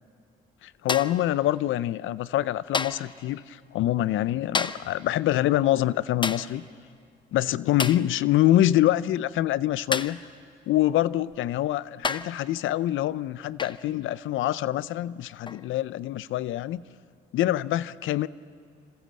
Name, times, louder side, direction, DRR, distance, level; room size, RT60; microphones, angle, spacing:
voice 1, 0.6-6.6 7.3-10.2 10.7-16.8 17.3-18.3, left 13 dB, 80° left, 18 dB, 0.6 m, -25 dB
sound 1, 0.9-1.3 2.7-3.1 4.5-5.0 6.2-6.6 7.8-8.1 9.9-10.3 11.3-11.4 12.0-12.4 13.6-13.9 15.5-15.7, left 4 dB, 25° left, 0.8 m, -30 dB
27.5 x 26.5 x 7.7 m, 2.3 s
cardioid pair, 90°, 20 cm